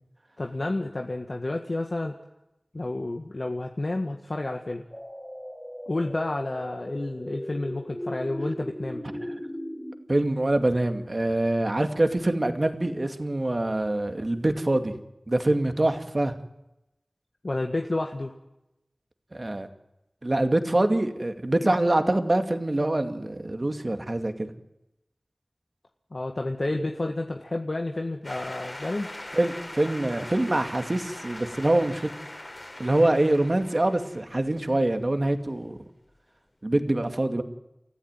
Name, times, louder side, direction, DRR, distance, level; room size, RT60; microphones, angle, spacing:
voice 1, 0.4-2.2 2.7-4.8 5.9-9.0 17.4-18.3 26.1-29.1, left 2 dB, 60° left, 3 dB, 1.7 m, -30 dB
sound 1, 4.9-9.9, equal, 10° left, 4.2 m, -37 dB
voice 2, 10.1-14.9 15.3-16.3 19.3-19.7 20.2-24.5 29.3-32.1 32.8-35.8 36.6-37.4, right 1 dB, 45° right, 7 dB, 2.3 m, -25 dB
sound 2, 28.2-35.0, left 1 dB, 40° left, 4.5 m, -41 dB
28.5 x 15.0 x 9.1 m, 0.92 s
wide cardioid pair, 60°, 0 cm